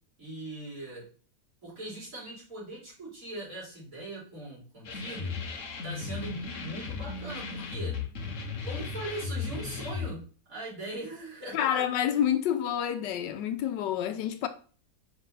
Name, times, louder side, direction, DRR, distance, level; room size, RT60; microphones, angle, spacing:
voice 1, 0.2-1.1 1.6-5.3 5.8-8.0 8.6-10.2 10.5-11.9, right 2 dB, 50° right, 3.5 m, -40 dB
sound 1, 4.8-10.1, left 5 dB, 50° left, 1.2 m, -36 dB
voice 2, 11.5-14.5, left 10 dB, 80° left, 1.3 m, -28 dB
5.4 x 4.8 x 3.9 m
omnidirectional pair, 1.9 m